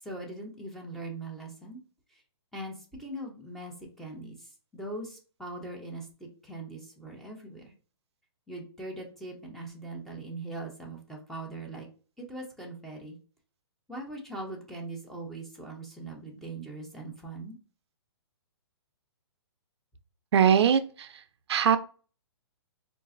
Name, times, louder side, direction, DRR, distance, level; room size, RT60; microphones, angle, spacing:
voice 1, 0.0-1.8 2.1-2.2 2.5-7.7 8.5-11.9 12.2-13.2 13.9-17.6, right 2 dB, ahead, -1 dB, 0.6 m, -41 dB
voice 2, 20.3-21.1 21.5-21.8, right 8 dB, 70° right, 11 dB, 0.4 m, -21 dB
3.7 x 2.4 x 2.5 m, 0.38 s
hypercardioid pair, 150°, 14 cm